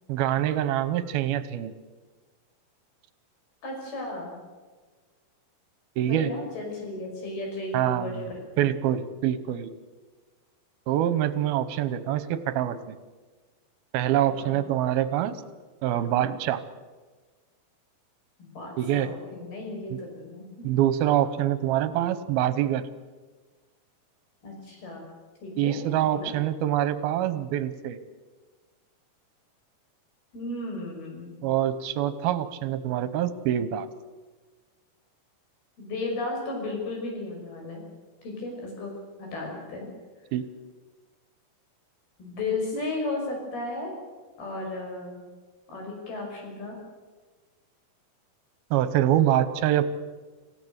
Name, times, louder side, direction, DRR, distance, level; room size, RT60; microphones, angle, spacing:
voice 1, 0.1-1.7 6.0-6.3 7.7-8.3 8.6-9.7 10.9-13.0 13.9-15.4 15.8-16.6 18.8-19.1 20.6-22.9 25.6-28.0 31.4-33.9 40.3-40.4 48.7-49.8, right 11 dB, 80° right, 13 dB, 2.8 m, -25 dB
voice 2, 3.6-4.4 6.1-8.7 14.4-14.6 18.4-20.7 24.4-25.1 25.4-26.3 30.3-31.4 35.8-37.8 38.2-38.9 39.2-39.9 42.2-43.9 44.4-45.2 45.7-46.8, left 2 dB, 80° left, 1 dB, 7.8 m, -34 dB
27.0 x 15.5 x 8.1 m, 1.4 s
omnidirectional pair, 4.4 m